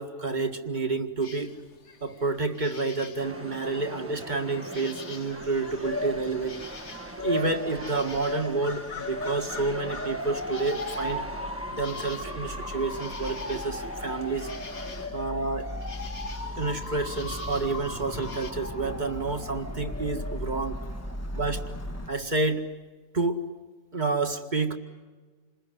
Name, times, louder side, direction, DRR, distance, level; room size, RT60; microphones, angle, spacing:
voice 1, 0.0-1.5 2.0-6.6 7.2-11.3 11.7-14.5 15.1-15.7 16.6-20.8 21.3-21.6 22.1-22.6 23.1-23.4 23.9-24.8, right 3 dB, 35° right, 6 dB, 2.1 m, -29 dB
sound 1, 1.2-18.5, left 5 dB, 65° left, 1.8 m, -46 dB
sound 2, 3.2-15.1, right 1 dB, 10° right, 1.3 m, -42 dB
Motor vehicle (road) / Siren, 5.3-22.1, left 1 dB, 10° left, 1.4 m, -36 dB
28.0 x 21.0 x 9.7 m, 1.4 s
omnidirectional pair, 1.3 m